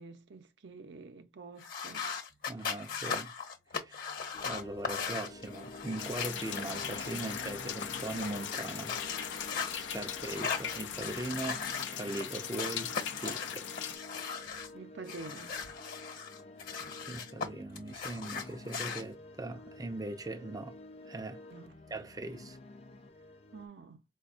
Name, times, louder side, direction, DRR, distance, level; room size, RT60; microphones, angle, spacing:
voice 1, 0.0-2.1 14.7-15.6 21.5-21.8 23.5-24.0, right 3 dB, 75° right, 0.6 m, -48 dB
sound 1, 1.6-9.7 10.2-12.2 12.6-14.7 15.1-17.5 17.7-19.0, left 6 dB, 50° left, 1.1 m, -39 dB
voice 2, 2.5-3.3 3.8-4.2 4.4-9.0 9.8-11.7 11.9-13.7 17.1-20.8 21.1-21.4 21.9-22.6, right 2 dB, 20° right, 0.4 m, -40 dB
sound 2, 4.3-23.7, left 2 dB, 35° left, 0.5 m, -51 dB
sound 3, 6.0-14.0, left 8 dB, 85° left, 0.6 m, -40 dB
5.0 x 2.3 x 2.4 m
head